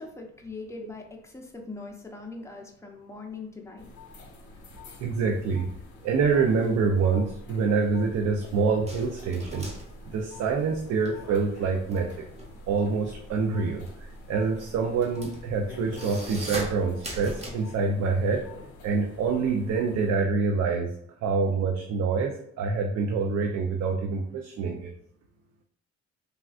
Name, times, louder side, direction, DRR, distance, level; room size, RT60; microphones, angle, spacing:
voice 1, 0.0-3.9, left 3 dB, 10° left, 1 dB, 0.6 m, -41 dB
sound 1, 3.8-20.1, left 2 dB, 65° left, 0.8 m, -46 dB
voice 2, 5.0-5.7 6.0-9.7 10.1-12.1 12.7-18.4 18.8-20.9 21.2-24.9, right 4 dB, 60° right, 2 dB, 0.5 m, -26 dB
sound 2, 8.9-11.1 11.4-17.5, right 1 dB, 20° right, 0.8 m, -40 dB
3.3 x 2.3 x 2.4 m, 0.69 s
cardioid pair, 90°, 30 cm